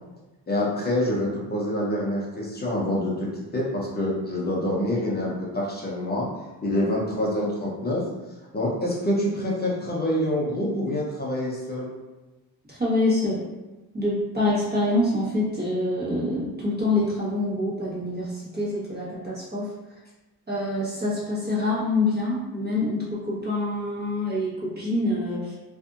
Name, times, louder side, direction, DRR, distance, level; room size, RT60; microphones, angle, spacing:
voice 1, 0.5-6.3 6.6-8.0 8.5-11.9, left 1 dB, 25° left, -5 dB, 0.7 m, -26 dB
voice 2, 12.7-13.4 13.9-19.7 20.5-25.5, left 2 dB, 25° right, -8 dB, 1.2 m, -26 dB
2.6 x 2.5 x 2.4 m, 1.1 s
cardioid pair, 95°, 39 cm